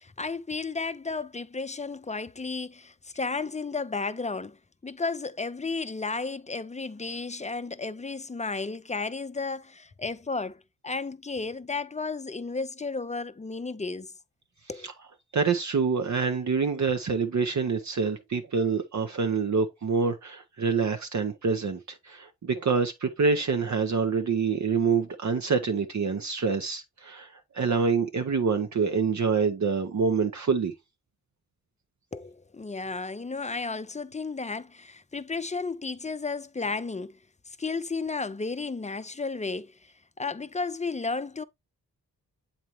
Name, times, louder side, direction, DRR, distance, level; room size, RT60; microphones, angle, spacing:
voice 1, 0.0-4.6 4.8-14.1 14.7-14.9 32.1-37.2 37.5-39.9 40.2-41.4, left 4 dB, 20° left, 0.5 m, -33 dB
voice 2, 15.3-30.7, right 5 dB, 50° right, 0.8 m, -26 dB
7.5 x 4.3 x 3.0 m
cardioid pair, 45°, 36 cm